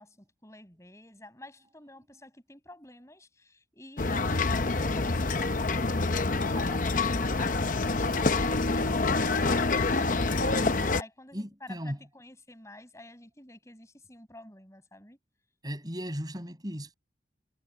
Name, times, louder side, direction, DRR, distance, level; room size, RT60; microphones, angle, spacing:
voice 1, 0.0-15.2, left 1 dB, 15° left, 7.5 m, -50 dB
sound 1, 4.0-11.0, left 3 dB, 45° left, 0.8 m, -27 dB
voice 2, 11.3-12.0 15.6-16.9, equal, 20° right, 7.9 m, -36 dB
head